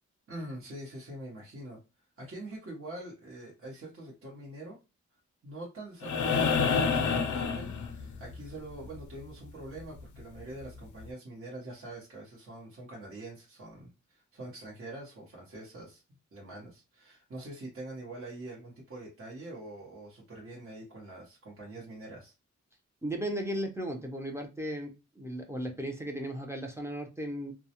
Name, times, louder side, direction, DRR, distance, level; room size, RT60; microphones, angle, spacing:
voice 1, 0.3-1.8 2.2-4.8 5.4-16.0 16.3-22.3, right 1 dB, 50° right, -5 dB, 0.9 m, -44 dB
sound 1, 6.0-8.3 10.2-10.3, left 5 dB, 90° left, 0.5 m, -28 dB
voice 2, 23.0-27.5, right 1 dB, 10° right, 2 dB, 0.5 m, -36 dB
2.3 x 2.0 x 2.8 m, 0.28 s
wide cardioid pair, 115°, 29 cm